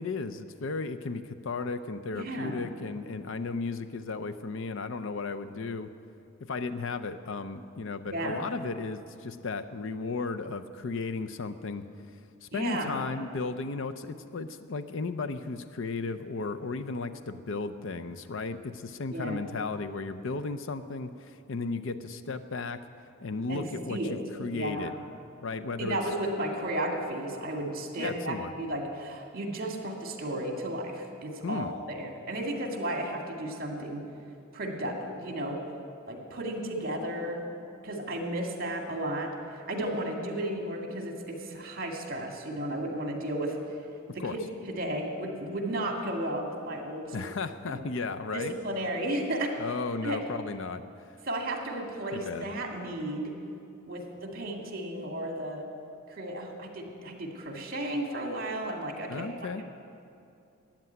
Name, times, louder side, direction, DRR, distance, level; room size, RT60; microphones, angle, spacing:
voice 1, 0.0-5.9 6.5-11.9 12.4-22.8 23.2-24.9 25.4-26.0 28.0-28.5 31.4-31.7 44.2-44.3 47.1-48.5 49.6-50.8 52.1-52.5 59.1-59.6, left 3 dB, 65° left, 10 dB, 0.6 m, -35 dB
voice 2, 2.1-2.7 8.0-8.5 12.5-13.1 19.1-19.4 23.5-24.1 24.5-24.9 25.8-34.0 34.5-35.6 36.1-37.5 37.8-43.8 44.1-44.2 44.7-47.2 47.7-47.8 48.3-49.5 50.0-50.2 51.3-53.3 53.9-55.7 56.1-59.3 59.6-59.7, right 1 dB, 45° right, 2 dB, 2.2 m, -34 dB
13.5 x 8.9 x 9.4 m, 2.5 s
head